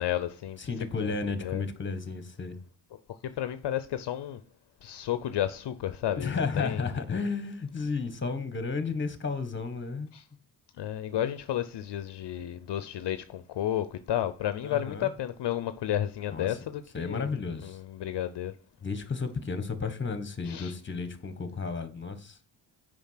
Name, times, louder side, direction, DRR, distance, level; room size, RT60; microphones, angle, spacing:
voice 1, 0.0-0.6 1.0-1.1 1.4-1.6 3.2-4.4 4.8-6.8 10.1-10.2 10.8-17.3 17.6-18.5 20.5-20.7, left 11 dB, 60° left, 0.7 m, -32 dB
voice 2, 0.6-2.6 6.2-10.1 14.6-15.1 16.3-16.6 16.9-17.8 18.8-22.4, left 4 dB, 25° left, 1.4 m, -33 dB
7.1 x 5.2 x 5.7 m
cardioid pair, 90°, 47 cm